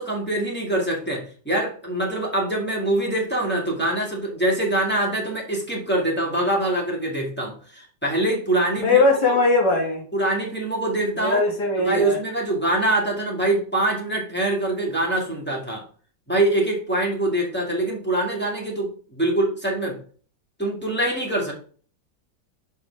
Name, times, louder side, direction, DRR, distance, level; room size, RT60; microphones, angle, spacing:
voice 1, 0.0-9.0 9.3-9.4 10.1-11.4 11.8-15.8 16.3-20.0 20.6-21.5, right 1 dB, 5° left, -2 dB, 2.1 m, -24 dB
voice 2, 8.8-10.0 11.2-12.2, left 3 dB, 65° left, 1 dB, 2.4 m, -20 dB
6.6 x 4.6 x 3.5 m, 0.42 s
omnidirectional pair, 1.9 m